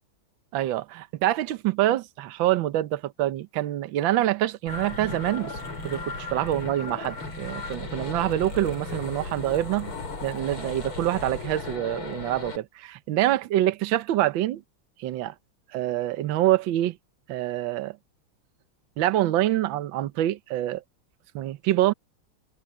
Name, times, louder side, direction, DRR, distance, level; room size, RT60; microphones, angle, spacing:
voice 1, 0.5-5.5 5.8-9.9 10.2-14.6 15.0-15.3 15.7-16.9 17.3-17.9 19.0-20.8 21.3-21.9, right 14 dB, 70° right, 1.5 m, -26 dB
sound 1, 4.7-12.6, left 3 dB, 90° left, 6.8 m, -36 dB
omnidirectional pair, 2.3 m